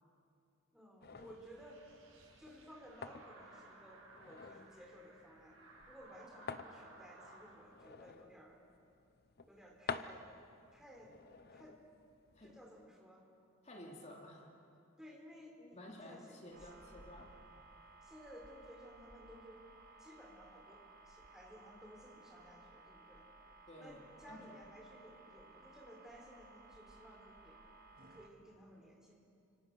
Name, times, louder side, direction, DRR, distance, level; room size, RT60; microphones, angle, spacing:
voice 1, 0.7-1.8 2.4-5.6 5.9-8.6 9.5-10.2 10.7-11.2 11.5-11.8 12.4-13.2 15.0-16.4 18.0-19.6 20.0-27.6 28.1-29.1, equal, 5° right, -1 dB, 4.2 m, -57 dB
sound 1, 1.0-12.9, left 5 dB, 50° left, 0.9 m, -51 dB
sound 2, 1.1-7.5, right 2 dB, 75° right, 6.5 m, -60 dB
voice 2, 13.6-14.5 15.7-17.4 23.7-24.5, left 1 dB, 35° left, 0 dB, 2.9 m, -53 dB
sound 3, 16.5-28.3, right 3 dB, 45° right, 2.0 m, -59 dB
29.0 x 26.5 x 6.3 m, 2.5 s
head